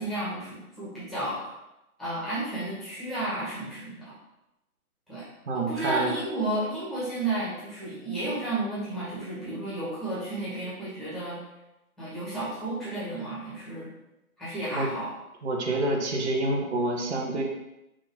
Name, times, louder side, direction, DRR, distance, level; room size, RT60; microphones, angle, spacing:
voice 1, 0.0-1.5 2.0-4.1 5.1-5.3 5.5-11.4 12.0-13.9 14.4-15.1, right 2 dB, ahead, -11 dB, 1.0 m, -32 dB
voice 2, 5.5-6.1 14.7-14.9 15.4-17.4, right 2 dB, 50° right, 0 dB, 1.0 m, -27 dB
5.5 x 2.6 x 3.5 m, 0.92 s
hypercardioid pair, 150°, 44 cm